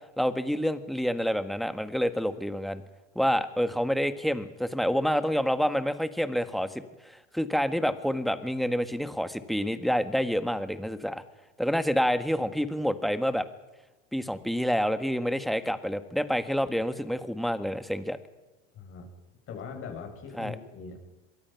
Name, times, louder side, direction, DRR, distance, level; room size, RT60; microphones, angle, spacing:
voice 1, 0.2-2.8 3.1-11.2 11.6-13.5 14.1-18.2 20.4-20.5, equal, ahead, 10 dB, 1.6 m, -28 dB
voice 2, 18.7-19.1 19.5-21.0, left 5 dB, 40° left, 3 dB, 7.4 m, -40 dB
24.5 x 22.5 x 5.9 m, 1.1 s
supercardioid pair, 110°, 31 cm